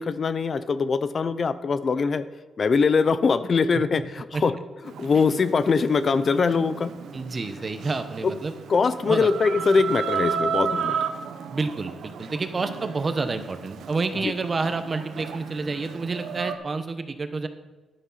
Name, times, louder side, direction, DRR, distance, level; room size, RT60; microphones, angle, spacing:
voice 1, 0.0-2.2 2.6-4.5 5.0-6.9 8.2-8.3 8.7-10.9 14.2-14.3, left 5 dB, 45° left, 13 dB, 0.5 m, -22 dB
Chicken rooster, 4.8-16.6, right 7 dB, 80° right, 0.8 m, -33 dB
voice 2, 7.1-8.5 9.1-9.3 11.5-17.5, right 3 dB, 35° right, 9 dB, 0.9 m, -29 dB
11.0 x 9.3 x 4.1 m, 1.2 s
cardioid pair, 105°, 0 cm